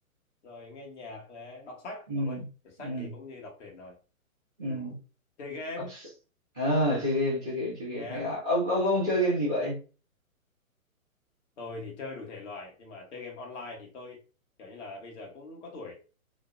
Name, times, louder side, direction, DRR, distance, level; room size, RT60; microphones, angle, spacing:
voice 1, 0.4-4.0 4.6-5.0 5.4-5.9 7.9-8.4 9.1-9.4 11.6-14.2 14.6-15.9, left 3 dB, 55° left, 0 dB, 1.0 m, -42 dB
voice 2, 2.1-2.4 2.8-3.1 4.6-4.9 6.5-9.7, equal, 5° left, -7 dB, 0.3 m, -28 dB
2.5 x 2.0 x 2.4 m, 0.34 s
figure-of-eight pair, 120°, 43 cm